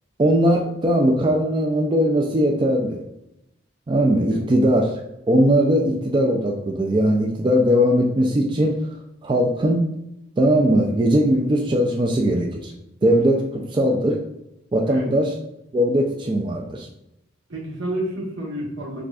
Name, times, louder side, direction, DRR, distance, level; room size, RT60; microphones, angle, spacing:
voice 1, 0.2-3.0 3.9-4.9 5.3-8.8 9.2-9.8 10.4-12.7 13.0-14.2 14.7-15.3 15.7-16.9, equal, 25° right, 1 dB, 0.3 m, -19 dB
voice 2, 17.5-19.0, right 1 dB, 80° right, -3 dB, 1.2 m, -30 dB
6.0 x 2.3 x 2.4 m, 0.85 s
head